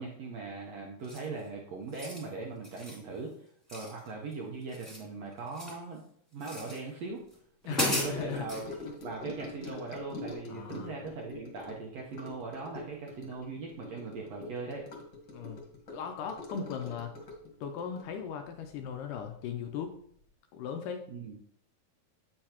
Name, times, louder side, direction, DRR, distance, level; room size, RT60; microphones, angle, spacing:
voice 1, 0.0-6.0 6.3-7.2 7.6-8.7 9.0-14.9 21.1-21.4, right 4 dB, 75° right, -2 dB, 1.6 m, -40 dB
sound 1, 1.0-1.4 1.8-2.3 2.6-3.0 3.7-4.3 4.6-5.8 6.4-6.8 7.3-7.4 7.7-8.6, left 1 dB, ahead, 1.5 m, -36 dB
voice 2, 7.7-8.5 10.5-10.9 15.3-15.6 15.9-17.1 17.6-20.0 20.5-21.1, left 7 dB, 80° left, 5 dB, 2.0 m, -38 dB
Gurgling / Sink (filling or washing) / Trickle dribble, 7.7-19.4 19.6-20.0 20.2-20.3, left 2 dB, 50° left, 1.6 m, -44 dB
8.1 x 6.6 x 2.9 m, 0.64 s
omnidirectional pair, 4.1 m